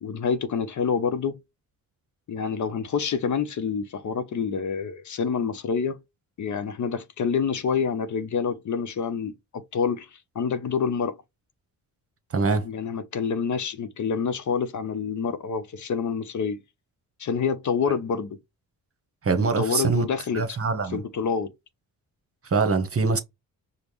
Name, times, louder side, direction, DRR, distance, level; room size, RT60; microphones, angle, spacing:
voice 1, 0.0-1.4 2.3-6.0 6.4-9.3 9.7-10.1 10.4-11.2 12.6-16.6 17.2-18.4 19.6-20.4 20.9-21.5, left 6 dB, 50° left, 0.7 m, -27 dB
voice 2, 12.3-12.7 19.2-20.1 20.3-21.0 22.4-23.2, right 4 dB, 35° right, 1.0 m, -23 dB
5.0 x 2.1 x 3.0 m
supercardioid pair, 60°, 38 cm